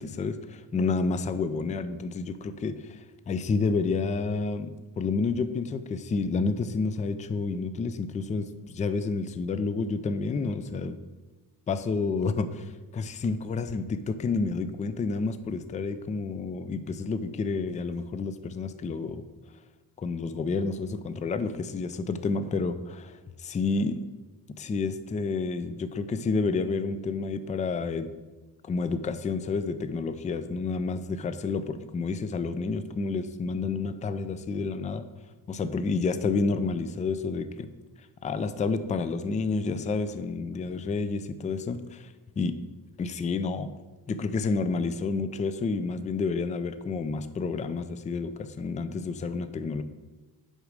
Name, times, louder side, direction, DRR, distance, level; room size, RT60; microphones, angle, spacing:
voice 1, 0.0-11.0 11.7-19.2 20.0-24.1 24.6-28.1 28.6-35.1 35.5-37.7 38.2-42.1 42.4-42.6 43.0-43.7 44.1-49.8, left 4 dB, 20° left, 11 dB, 0.3 m, -30 dB
6.4 x 4.9 x 6.4 m, 1.2 s
cardioid pair, 130°, 36 cm